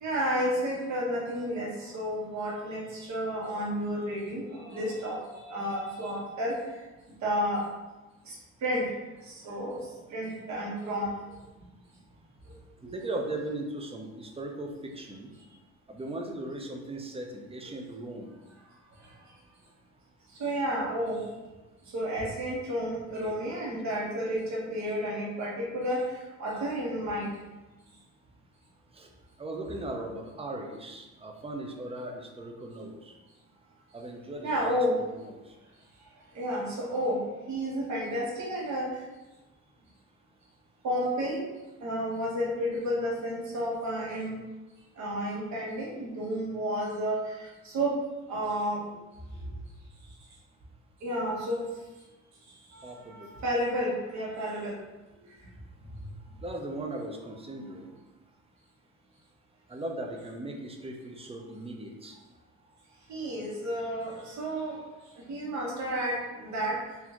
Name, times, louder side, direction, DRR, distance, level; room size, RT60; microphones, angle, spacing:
voice 1, 0.0-6.8 7.2-7.7 8.2-8.9 9.2-11.3 12.5-12.6 12.8-12.9 19.0-19.1 20.3-21.2 21.9-27.4 34.4-34.9 36.3-39.0 40.8-41.4 41.8-44.4 45.0-48.0 48.3-48.8 49.4-49.5 51.0-51.6 52.7-54.8 63.1-64.8 65.3-66.8, equal, 65° right, -4 dB, 1.3 m, -31 dB
voice 2, 12.9-15.3 15.9-18.3 28.9-29.1 29.4-33.1 33.9-35.4 52.8-53.3 56.4-57.9 59.7-62.2, right 2 dB, 20° right, 2 dB, 0.6 m, -38 dB
4.0 x 2.7 x 2.9 m, 1.1 s
cardioid pair, 90°, 30 cm